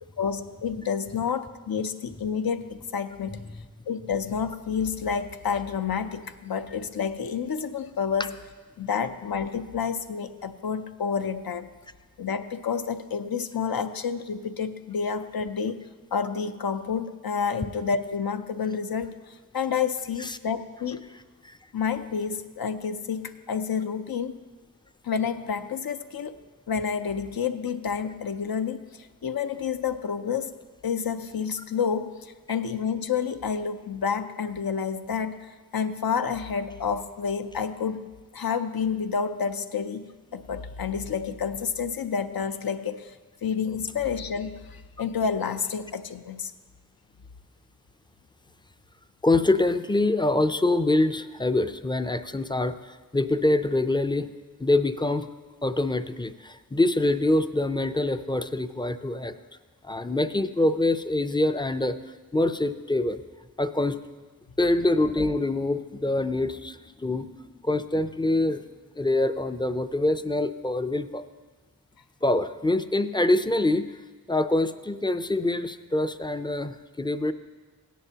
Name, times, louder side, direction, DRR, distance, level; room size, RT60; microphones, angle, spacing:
voice 1, 0.2-3.4 3.9-8.3 8.8-11.7 12.2-15.8 16.1-21.0 21.7-24.4 25.0-26.3 26.7-30.5 30.8-38.1 38.3-43.2 43.4-46.5, left 6 dB, 80° left, 9 dB, 0.6 m, -29 dB
voice 2, 49.2-54.3 54.6-55.3 55.6-59.3 59.8-62.0 62.3-63.2 63.6-64.0 64.6-67.3 67.6-68.6 69.0-71.3 72.2-73.9 74.3-77.3, left 2 dB, 15° left, 10 dB, 0.4 m, -25 dB
16.5 x 10.0 x 2.9 m, 1.3 s
wide cardioid pair, 70°, 36 cm